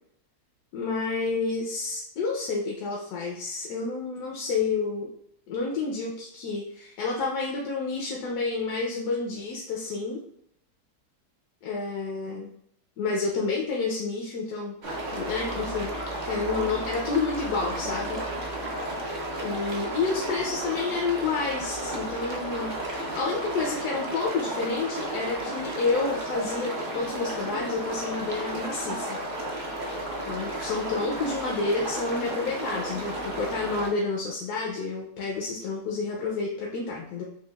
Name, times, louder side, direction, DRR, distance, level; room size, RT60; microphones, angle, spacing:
voice 1, 0.7-5.1 5.5-10.2 11.6-12.5 13.0-14.8 15.1-15.9 16.2-18.2 19.4-22.7 23.1-29.2 30.2-37.2, left 4 dB, 80° left, -1 dB, 1.2 m, -29 dB
sound 1, 14.8-33.9, right 1 dB, 50° right, 0.6 m, -33 dB
6.3 x 2.3 x 2.3 m, 0.73 s
omnidirectional pair, 1.6 m